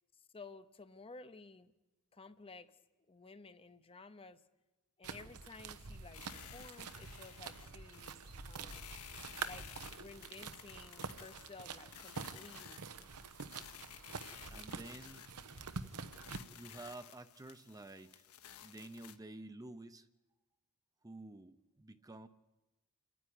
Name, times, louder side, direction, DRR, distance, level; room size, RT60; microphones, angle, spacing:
voice 1, 0.1-1.7 2.1-2.8 3.1-4.4 5.0-8.9 9.4-12.9, left 3 dB, 25° left, 11 dB, 0.7 m, -54 dB
sound 1, 5.0-16.4, right 5 dB, 90° right, 1.0 m, -47 dB
sound 2, 6.1-19.2, left 9 dB, 75° left, 1.2 m, -55 dB
voice 2, 14.5-15.3 16.6-18.2 18.6-20.1 21.0-22.3, right 2 dB, 15° right, 10 dB, 0.6 m, -50 dB
29.0 x 10.0 x 9.7 m, 1.1 s
head